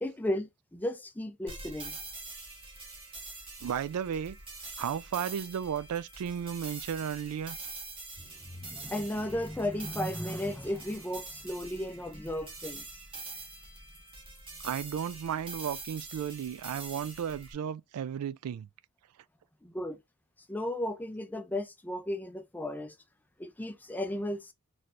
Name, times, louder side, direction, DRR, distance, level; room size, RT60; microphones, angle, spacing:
voice 1, 0.0-2.0 8.4-12.9 19.6-20.0 20.5-23.0 23.4-24.5, left 1 dB, 10° left, 0.4 m, -34 dB
sound 1, 1.5-17.5, right 3 dB, 25° right, 1.1 m, -45 dB
voice 2, 3.6-4.4 4.8-7.6 14.6-18.7, right 8 dB, 85° right, 0.3 m, -34 dB
4.2 x 3.2 x 2.5 m
head